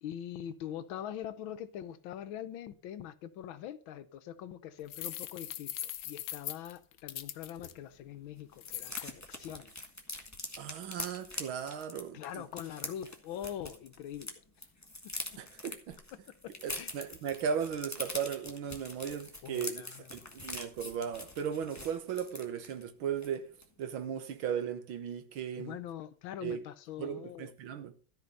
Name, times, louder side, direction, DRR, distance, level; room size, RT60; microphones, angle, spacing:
voice 1, 0.0-9.7 12.1-14.3 15.0-15.1 16.4-17.0 19.4-20.4 25.6-27.5, left 10 dB, 85° left, 1.6 m, -43 dB
sound 1, 4.9-7.7 8.6-9.1, left 12 dB, 65° left, 1.2 m, -40 dB
sound 2, 7.6-7.7 8.0-8.1 8.3-14.3 14.6-22.8 23.2-23.4 23.6-23.9, left 1 dB, 10° left, 1.4 m, -44 dB
voice 2, 10.6-12.5 15.4-16.0 16.6-23.5 23.8-25.8 26.4-26.6 27.0-28.0, right 7 dB, 85° right, 2.0 m, -37 dB
13.5 x 5.3 x 5.4 m
omnidirectional pair, 2.2 m